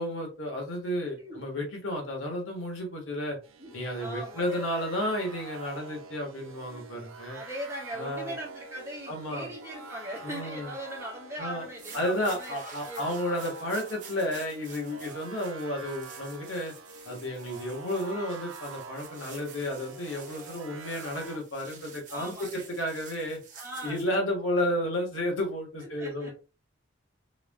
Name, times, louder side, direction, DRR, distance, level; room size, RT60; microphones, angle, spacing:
voice 1, 0.0-3.4 3.7-7.4 7.9-8.3 9.1-9.5 10.2-10.7 11.4-11.6 11.9-16.7 17.0-23.4 23.8-26.3, left 1 dB, 70° left, 0 dB, 1.5 m, -32 dB
sound 1, 3.4-21.4, right 4 dB, 80° right, 0.7 m, -46 dB
voice 2, 3.6-4.7 7.3-13.4 22.1-22.7 23.5-24.1 25.8-26.3, equal, 15° right, -4 dB, 1.8 m, -40 dB
sound 2, 11.6-24.1, right 6 dB, 40° right, 1.0 m, -50 dB
4.7 x 3.6 x 2.2 m, 0.33 s
head